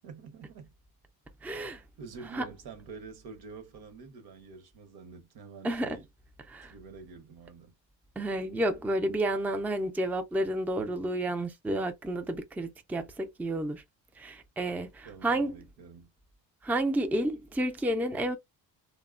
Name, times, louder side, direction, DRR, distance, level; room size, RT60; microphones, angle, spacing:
voice 1, 0.0-0.7 2.0-6.1 6.7-7.7 15.0-16.1, right 5 dB, 70° right, 0.9 m, -47 dB
voice 2, 1.4-1.8 2.3-2.4 5.6-6.0 6.5-6.7 8.2-13.8 14.2-15.6 16.6-18.4, right 1 dB, 5° right, 0.4 m, -30 dB
2.8 x 2.1 x 2.4 m
cardioid pair, 80°, 39 cm